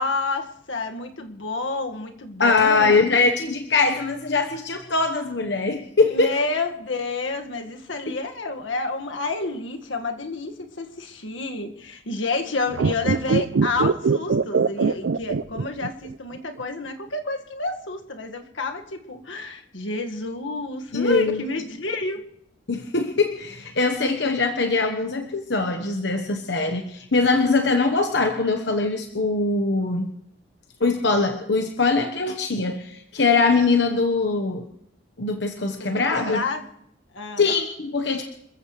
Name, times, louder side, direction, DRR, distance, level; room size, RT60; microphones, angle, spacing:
voice 1, 0.0-3.1 6.1-22.2 35.9-36.6 37.1-37.4, left 3 dB, 90° left, 1.8 m, -29 dB
voice 2, 2.4-6.4 8.1-8.2 20.9-21.4 22.7-30.1 30.8-34.7 35.2-36.4 37.4-38.2, left 3 dB, 70° left, 1.2 m, -22 dB
sound 1, 12.7-16.1 16.4-16.5, right 4 dB, 85° right, 0.5 m, -22 dB
28.0 x 14.5 x 3.3 m
head